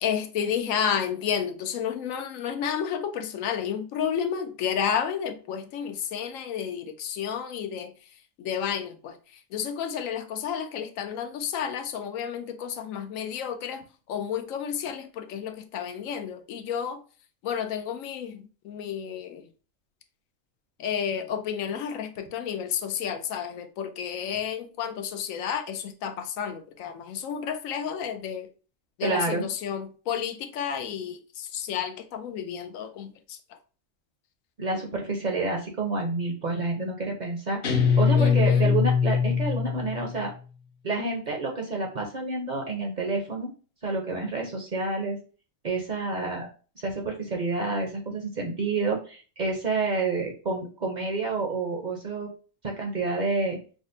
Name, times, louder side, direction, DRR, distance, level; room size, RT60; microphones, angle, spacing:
voice 1, 0.0-7.9 8.4-9.1 9.5-13.8 14.1-17.0 17.4-19.4 20.8-28.5 29.0-33.4 38.1-38.7, left 8 dB, 90° left, 1.0 m, -31 dB
voice 2, 29.0-29.5 34.6-40.3 40.8-43.5 43.8-45.2 45.6-46.5 46.8-52.3 52.6-53.6, right 3 dB, 45° right, 0.6 m, -29 dB
Guitar, 37.6-40.2, left 6 dB, 55° left, 0.7 m, -22 dB
6.0 x 2.0 x 2.6 m
omnidirectional pair, 1.3 m